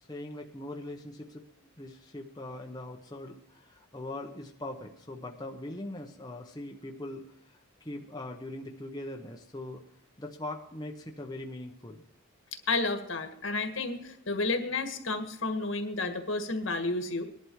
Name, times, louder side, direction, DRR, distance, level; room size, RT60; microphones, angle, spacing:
voice 1, 0.1-1.4 1.8-7.2 7.5-9.8 10.2-12.0, left 1 dB, 20° left, 1 dB, 1.0 m, -41 dB
voice 2, 12.7-17.2, left 3 dB, 65° left, 7 dB, 1.8 m, -31 dB
20.0 x 11.5 x 4.7 m, 0.76 s
head